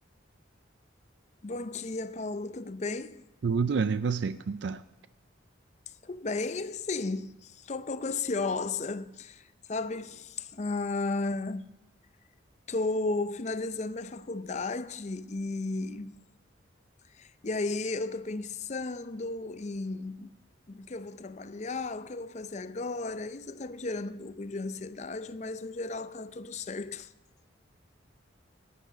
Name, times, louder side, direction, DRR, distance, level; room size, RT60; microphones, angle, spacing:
voice 1, 1.4-3.3 6.0-11.6 12.7-16.2 17.1-20.4 20.7-27.1, left 3 dB, 35° left, 0.5 m, -34 dB
voice 2, 3.4-4.8, right 5 dB, 65° right, 0.4 m, -28 dB
12.5 x 10.5 x 5.0 m
head